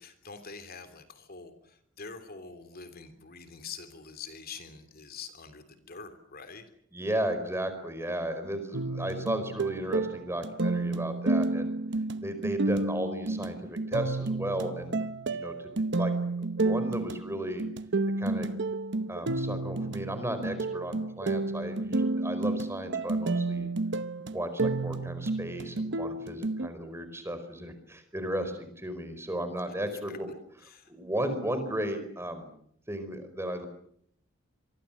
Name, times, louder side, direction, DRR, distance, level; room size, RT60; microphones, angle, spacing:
voice 1, 0.0-6.7 29.7-29.8 30.1-30.2 30.6-30.9, left 5 dB, 50° left, 9 dB, 3.2 m, -45 dB
voice 2, 6.9-11.7 12.2-16.1 16.4-17.6 18.2-18.5 19.1-23.7 24.3-30.3 30.9-32.5 32.9-33.7, right 1 dB, 15° right, 9 dB, 4.7 m, -34 dB
sound 1, 8.7-26.7, right 2 dB, 60° right, 1.0 m, -31 dB
26.5 x 24.0 x 7.4 m, 0.67 s
head